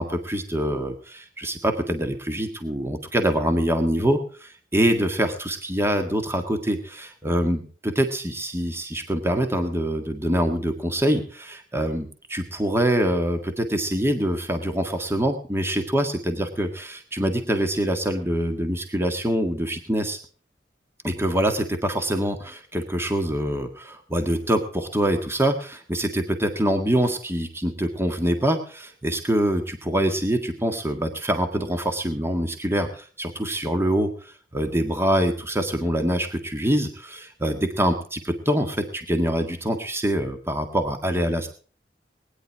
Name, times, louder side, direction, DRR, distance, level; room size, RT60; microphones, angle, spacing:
voice 1, 0.0-20.2 21.0-41.5, right 1 dB, 15° right, 6 dB, 1.8 m, -25 dB
20.0 x 10.5 x 4.7 m, 0.42 s
head